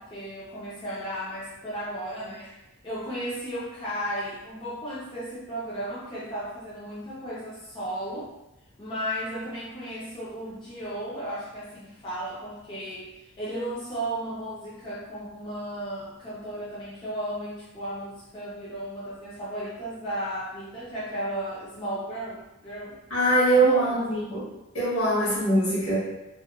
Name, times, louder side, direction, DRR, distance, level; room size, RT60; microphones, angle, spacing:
voice 1, 0.0-2.6 2.8-8.3 8.8-23.0 23.5-24.4, right 1 dB, 20° left, -9 dB, 0.4 m, -35 dB
voice 2, 23.1-24.5 24.7-26.0, right 1 dB, 70° left, -9 dB, 1.3 m, -22 dB
2.8 x 2.1 x 2.3 m, 0.95 s
head